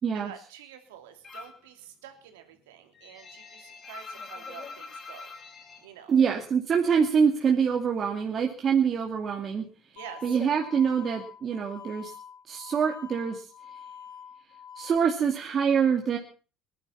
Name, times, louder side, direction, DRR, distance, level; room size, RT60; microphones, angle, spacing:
voice 1, 0.1-5.3 5.8-6.2 9.9-10.4, right 10 dB, 85° right, 6 dB, 2.9 m, -47 dB
sound 1, 1.2-1.7 2.0-6.9 7.2-8.2 8.5-11.3, left 4 dB, 35° left, 4.8 m, -45 dB
voice 2, 6.1-9.7 10.2-12.1 12.5-13.5 14.8-16.2, right 6 dB, 40° right, 1 dB, 2.5 m, -25 dB
sound 2, 10.0-15.0, left 7 dB, 70° left, 4.4 m, -46 dB
20.5 x 11.0 x 5.8 m, 0.39 s
hypercardioid pair, 75°, 0 cm